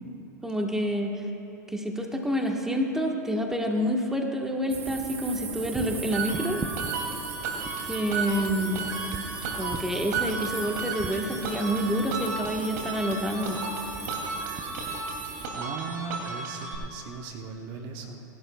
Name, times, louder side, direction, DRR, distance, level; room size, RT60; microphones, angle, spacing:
voice 1, 0.4-1.2 1.7-6.6 7.9-8.9 9.5-13.6, equal, 5° right, 1 dB, 1.4 m, -28 dB
sound 1, 4.7-15.5, right 5 dB, 20° right, 0.9 m, -38 dB
sound 2, 6.1-16.7, right 4 dB, 70° right, 2.8 m, -34 dB
voice 2, 15.5-18.2, right 5 dB, 50° right, 3 dB, 1.2 m, -38 dB
28.0 x 11.5 x 2.4 m, 2.8 s
hypercardioid pair, 105°, 10 cm